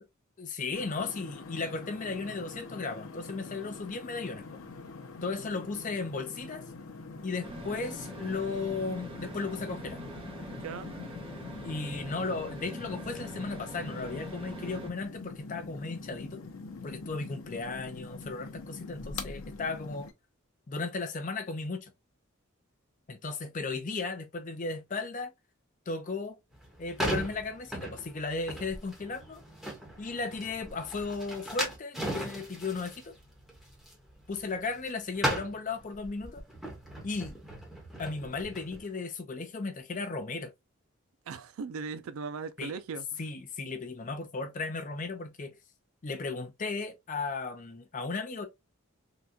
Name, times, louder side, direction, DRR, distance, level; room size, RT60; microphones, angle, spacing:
voice 1, 0.4-4.5 5.2-6.6 7.2-10.0 11.6-16.4 16.8-20.1 20.7-21.9 23.1-25.3 25.9-26.4 26.8-29.4 30.0-33.1 34.3-36.4 37.0-37.4 38.0-40.5 42.6-42.7 43.2-45.6 46.0-48.5, left 3 dB, 35° left, 0.5 m, -35 dB
sound 1, 0.7-20.1, left 3 dB, 80° left, 0.7 m, -44 dB
sound 2, 7.4-14.9, equal, 25° right, 0.8 m, -43 dB
voice 2, 10.6-10.9 41.3-43.2, right 5 dB, 80° right, 0.4 m, -38 dB
sound 3, 26.5-34.9 35.1-38.8, right 1 dB, ahead, 1.0 m, -37 dB
3.8 x 2.2 x 2.7 m
head